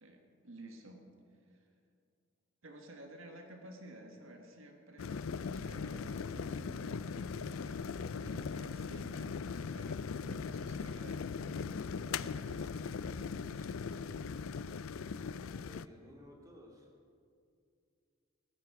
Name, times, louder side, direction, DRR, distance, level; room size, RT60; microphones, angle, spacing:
voice 1, 0.0-1.1 1.5-1.7 2.6-13.8, right 1 dB, 75° right, 3 dB, 1.7 m, -54 dB
sound 1, 5.0-15.9, left 5 dB, 80° left, 0.4 m, -39 dB
voice 2, 15.3-16.9, equal, 15° right, -2 dB, 2.5 m, -56 dB
19.0 x 14.0 x 4.8 m, 2.3 s
head